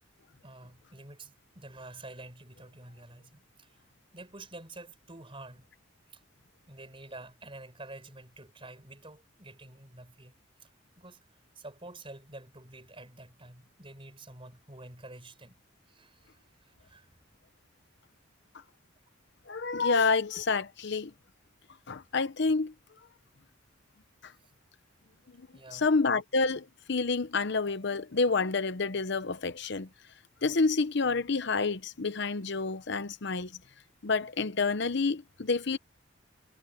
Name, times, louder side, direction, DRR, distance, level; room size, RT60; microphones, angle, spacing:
voice 1, 0.4-3.8 4.1-5.7 6.1-6.2 6.7-10.3 10.6-10.7 11.0-15.6 15.9-17.2 24.3-24.5 25.5-25.9, right 2 dB, 25° right, 5.0 m, -49 dB
voice 2, 19.5-21.1 21.9-22.7 24.2-24.3 25.7-29.9 30.4-33.5 34.0-35.8, left 4 dB, 60° left, 0.8 m, -28 dB
head